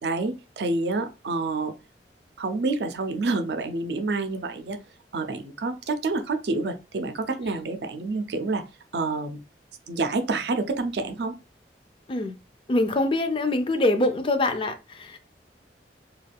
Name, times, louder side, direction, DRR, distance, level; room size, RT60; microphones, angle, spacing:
voice 1, 0.0-1.7 2.4-4.8 5.1-8.6 8.9-9.4 9.9-11.3, right 3 dB, 70° right, 0.5 m, -28 dB
voice 2, 12.7-15.2, left 2 dB, 30° left, 0.4 m, -24 dB
2.3 x 2.3 x 3.4 m
head